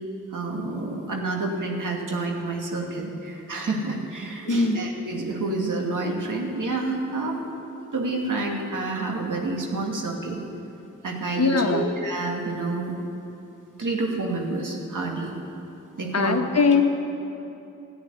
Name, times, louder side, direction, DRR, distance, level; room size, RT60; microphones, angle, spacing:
voice 1, 0.3-7.4 7.9-10.4 11.0-12.9 13.8-15.3 16.0-16.4, right 2 dB, 70° right, 0 dB, 2.5 m, -28 dB
voice 2, 4.5-4.8 11.4-11.9 16.1-16.8, left 4 dB, 50° left, 5 dB, 1.4 m, -21 dB
14.0 x 9.9 x 9.7 m, 2.8 s
supercardioid pair, 40°, 33 cm